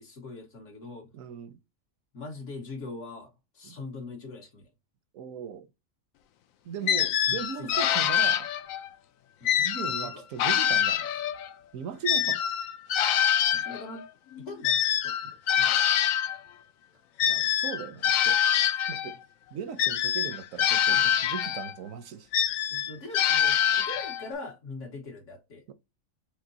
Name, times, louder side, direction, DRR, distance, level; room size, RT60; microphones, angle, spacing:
voice 1, 0.0-1.1 2.1-4.7 7.2-7.8 9.4-9.6 10.0-10.2 13.5-14.1 14.4-15.2 15.6-15.8 16.9-17.0 20.9-21.1 22.7-25.6, left 3 dB, 60° left, 1.7 m, -42 dB
voice 2, 1.1-1.6 3.6-3.8 5.1-5.7 6.6-8.5 9.6-11.1 11.7-12.4 17.2-18.4 18.7-19.2 19.5-22.3 25.7-25.8, right 7 dB, 75° right, 1.0 m, -38 dB
sound 1, 6.9-8.9 9.5-11.5 12.0-16.4 17.2-19.2 19.8-21.8 22.3-24.3, left 10 dB, 80° left, 1.0 m, -25 dB
5.1 x 3.6 x 2.7 m
omnidirectional pair, 1.4 m